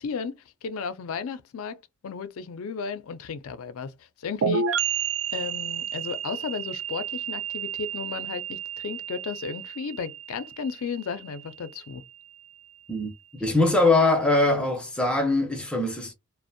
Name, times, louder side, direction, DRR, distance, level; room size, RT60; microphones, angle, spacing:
voice 1, 0.0-1.8 2.0-4.9 5.3-12.0, left 5 dB, 80° left, 0.4 m, -34 dB
sound 1, 4.4-12.0, right 7 dB, 75° right, 0.4 m, -31 dB
voice 2, 12.9-16.1, left 2 dB, 5° left, 0.5 m, -22 dB
2.5 x 2.1 x 2.5 m
head